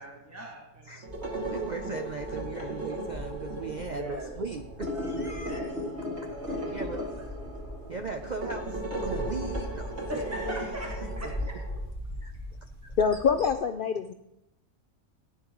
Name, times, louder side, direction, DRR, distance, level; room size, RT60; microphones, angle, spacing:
voice 1, 0.0-1.1 2.5-2.8 3.8-4.3 5.3-5.9 6.3-7.2 10.1-11.6, equal, 10° right, -1 dB, 1.4 m, -40 dB
voice 2, 0.9-5.6 6.2-7.0 7.7-10.1 10.8-11.3 12.2-13.0, right 4 dB, 65° right, 6 dB, 0.4 m, -39 dB
sound 1, 1.0-11.8, right 1 dB, 50° right, 2.5 m, -36 dB
sound 2, 1.1-13.5, left 1 dB, 15° left, 5.3 m, -40 dB
voice 3, 13.0-14.1, left 6 dB, 80° left, 8 dB, 0.4 m, -25 dB
15.5 x 9.8 x 3.0 m, 0.88 s
omnidirectional pair, 1.5 m